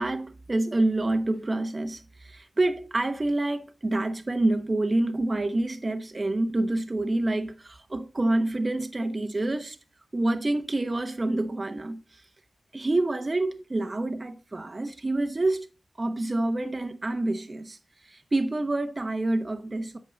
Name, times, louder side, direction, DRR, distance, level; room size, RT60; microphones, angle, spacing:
voice 1, 0.0-9.8 10.1-12.2 12.7-15.7 16.0-17.8 18.0-20.0, right 2 dB, 35° right, 1.0 m, -27 dB
8.4 x 5.3 x 4.0 m
cardioid pair, 45°, 0 cm